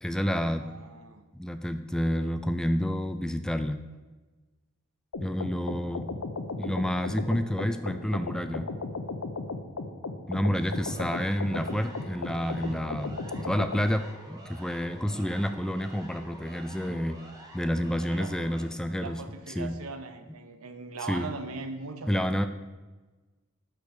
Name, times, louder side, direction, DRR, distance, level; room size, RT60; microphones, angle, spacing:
voice 1, 0.0-0.7 1.3-3.8 5.2-6.1 6.6-8.7 10.3-17.2 17.5-19.2 19.6-19.7 21.1-21.3 22.1-22.5, equal, 5° left, 9 dB, 0.3 m, -29 dB
voice 2, 0.5-1.3 18.1-18.7 19.0-22.5, right 3 dB, 70° right, 7 dB, 1.1 m, -40 dB
sound 1, 5.1-13.9, left 3 dB, 85° left, 0.9 m, -35 dB
Siren, 10.7-18.6, right 1 dB, 20° right, 1.7 m, -49 dB
8.3 x 6.2 x 6.6 m, 1.2 s
head